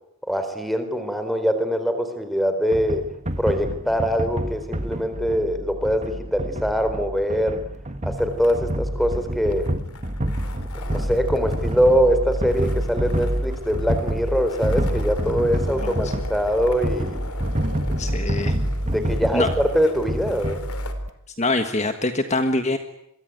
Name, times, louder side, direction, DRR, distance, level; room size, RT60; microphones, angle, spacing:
voice 1, 0.3-3.1 3.4-7.6 8.0-9.7 10.7-17.2 18.8-20.6, equal, ahead, 8 dB, 4.1 m, -23 dB
sound 1, 2.7-21.1, right 1 dB, 30° right, 1.8 m, -27 dB
sound 2, 8.2-20.9, left 2 dB, 85° left, 3.9 m, -40 dB
voice 2, 15.7-16.1 18.0-18.6 19.3-19.5 21.4-22.8, left 2 dB, 30° left, 7 dB, 1.6 m, -24 dB
27.5 x 23.0 x 9.2 m, 0.80 s
head